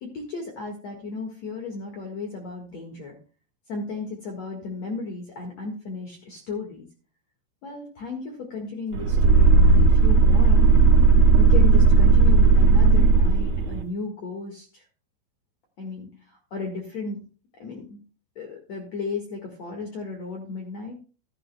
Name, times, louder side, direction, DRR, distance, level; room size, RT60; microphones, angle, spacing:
voice 1, 0.0-3.2 3.7-6.9 7.6-10.7 11.4-14.9 15.8-17.2 17.5-18.0 18.4-21.0, left 4 dB, 60° left, 1 dB, 1.8 m, -35 dB
sound 1, 8.9-13.8, right 3 dB, 75° right, 3.6 m, -16 dB
14.0 x 12.5 x 2.2 m, 0.37 s
omnidirectional pair, 5.6 m